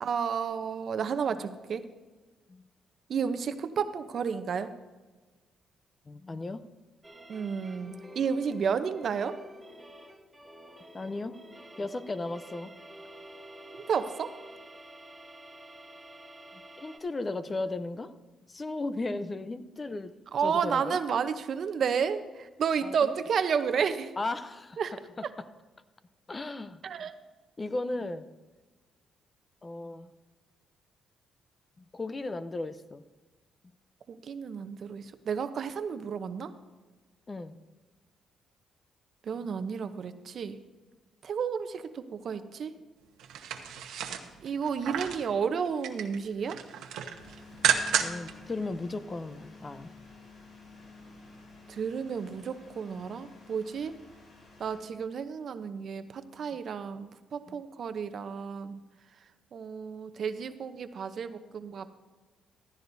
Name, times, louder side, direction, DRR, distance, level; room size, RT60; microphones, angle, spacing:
voice 1, 0.0-1.8 3.1-4.7 7.3-9.4 13.7-14.3 20.3-24.1 24.8-24.9 26.8-27.1 34.1-36.5 39.2-40.6 41.2-42.8 44.4-46.6 51.7-53.9 54.6-58.8 59.5-61.9, right 6 dB, 55° right, 10 dB, 0.7 m, -31 dB
voice 2, 6.1-6.6 10.9-11.4 11.8-12.8 16.5-18.1 18.5-21.0 22.8-23.1 24.2-24.8 25.2-25.5 26.3-26.8 27.6-28.3 29.6-30.1 31.8-33.0 37.3-37.6 42.3-42.4 48.0-49.9 57.5-57.6, left 2 dB, 25° left, 12 dB, 0.6 m, -36 dB
sound 1, 7.0-17.0, right 1 dB, 10° right, 1.7 m, -49 dB
sound 2, 43.2-45.3 45.7-46.2 46.5-48.3 48.7-48.8, right 8 dB, 85° right, 1.1 m, -31 dB
sound 3, 47.2-54.8, left 3 dB, 60° left, 4.6 m, -51 dB
15.0 x 14.0 x 2.7 m, 1.3 s
cardioid pair, 90°, 0 cm